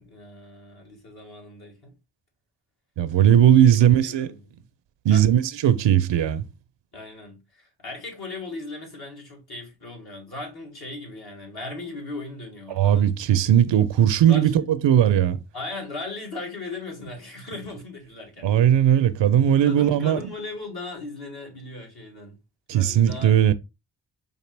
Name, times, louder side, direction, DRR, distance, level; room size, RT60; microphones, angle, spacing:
voice 1, 0.0-1.9 3.5-4.5 5.1-5.3 6.9-13.1 14.3-14.5 15.5-18.5 19.6-22.4 22.7-23.3, left 2 dB, 60° left, 2.2 m, -37 dB
voice 2, 3.0-4.3 5.0-6.4 12.7-15.4 18.4-20.2 22.7-23.5, right 10 dB, 85° right, 0.5 m, -18 dB
5.0 x 2.7 x 3.2 m
cardioid pair, 40°, 42 cm